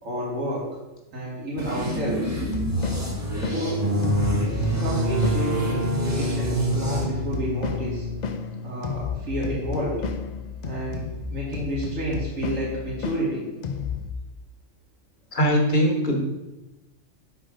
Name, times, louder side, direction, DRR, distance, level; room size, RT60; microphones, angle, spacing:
voice 1, 0.0-0.8 1.1-2.4 3.4-3.9 4.4-8.1 8.6-10.0 10.6-13.5, equal, 80° right, -6 dB, 2.5 m, -30 dB
sound 1, 1.6-7.0, right 2 dB, 15° right, 1.2 m, -28 dB
sound 2, 2.3-14.1, left 5 dB, 75° left, 0.4 m, -32 dB
sound 3, 3.6-9.1, equal, 45° right, 0.6 m, -28 dB
voice 2, 15.3-16.2, equal, 40° left, 1 dB, 1.3 m, -21 dB
6.3 x 4.6 x 5.0 m, 1.0 s
omnidirectional pair, 1.3 m